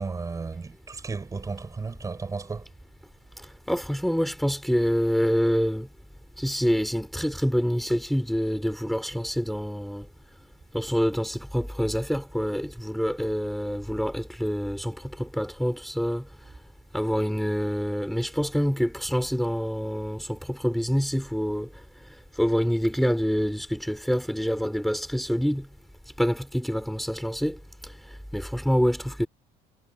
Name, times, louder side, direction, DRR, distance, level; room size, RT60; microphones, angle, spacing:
voice 1, 0.0-2.7, right 4 dB, 20° right, 7.1 m, -34 dB
voice 2, 3.4-5.9 6.4-10.1 10.7-16.3 16.9-21.7 22.3-25.7 26.2-29.3, equal, ahead, 5.4 m, -26 dB
cardioid pair, 130°, 17 cm